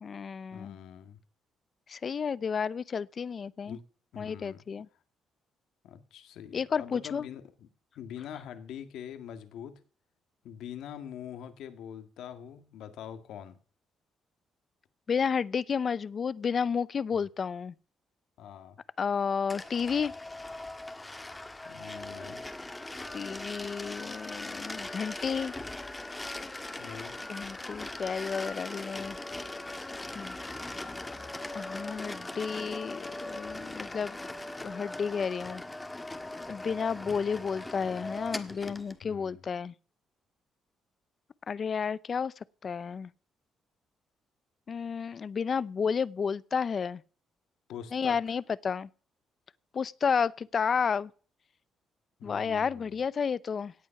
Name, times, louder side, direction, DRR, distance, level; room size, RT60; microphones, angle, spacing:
voice 1, 0.0-0.8 1.9-3.8 4.2-4.9 6.5-7.3 15.1-17.7 19.0-20.1 23.1-25.5 27.3-29.2 30.1-30.4 31.5-34.2 34.6-35.6 36.5-39.7 41.5-42.3 42.6-43.1 44.7-47.0 47.9-48.9 49.7-51.1 52.2-53.7, left 6 dB, 45° left, 0.6 m, -31 dB
voice 2, 0.5-1.2 3.7-3.8 4.1-4.6 5.8-7.7 8.0-9.8 10.4-13.6 17.1-17.2 18.4-18.8 21.6-22.4 26.8-27.2 39.0-39.5 47.7-48.4 52.2-53.0, left 9 dB, 80° left, 1.9 m, -44 dB
sound 1, 19.5-39.0, left 2 dB, 15° left, 1.5 m, -40 dB
17.5 x 8.6 x 5.9 m
cardioid pair, 90°, 0 cm